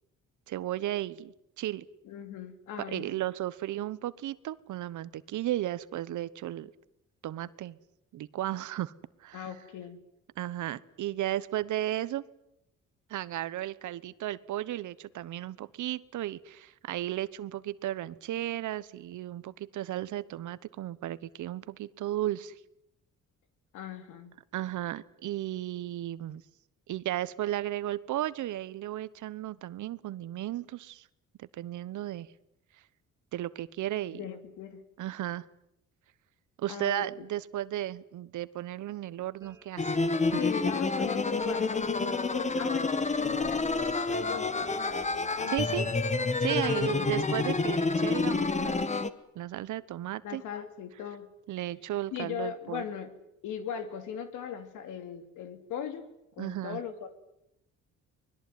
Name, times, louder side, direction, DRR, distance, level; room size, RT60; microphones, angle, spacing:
voice 1, 0.5-1.8 2.9-6.7 7.2-7.8 8.1-8.9 9.2-9.5 10.4-12.2 13.1-22.6 24.5-26.4 26.9-31.1 31.4-32.3 33.3-34.2 35.0-35.4 36.6-40.0 45.4-45.9 46.4-49.0 49.3-50.4 51.5-52.8 56.4-56.8, right 13 dB, 75° right, 16 dB, 1.2 m, -34 dB
voice 2, 2.0-3.2 9.3-10.0 23.7-24.3 34.1-34.8 36.7-37.2 40.4-45.9 46.6-47.3 50.2-51.3 52.1-53.1 53.4-56.1 56.4-57.1, left 8 dB, 90° left, 9 dB, 2.9 m, -39 dB
sound 1, 39.4-45.8, right 2 dB, 10° right, 2.7 m, -51 dB
sound 2, 39.8-49.1, left 3 dB, 25° left, 1.5 m, -28 dB
24.5 x 20.5 x 9.4 m, 0.82 s
cardioid pair, 90°, 30 cm